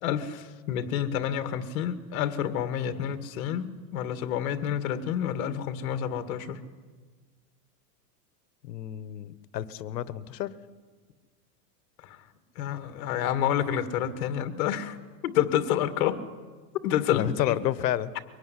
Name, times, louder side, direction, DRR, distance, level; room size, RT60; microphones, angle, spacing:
voice 1, 0.0-6.6 12.0-12.2 12.6-15.0 15.2-16.2 16.8-17.6, left 10 dB, 60° left, 10 dB, 2.1 m, -29 dB
voice 2, 8.6-10.5 17.1-18.1, left 12 dB, 85° left, 16 dB, 1.4 m, -30 dB
23.5 x 18.0 x 9.8 m, 1.5 s
supercardioid pair, 165°, 48 cm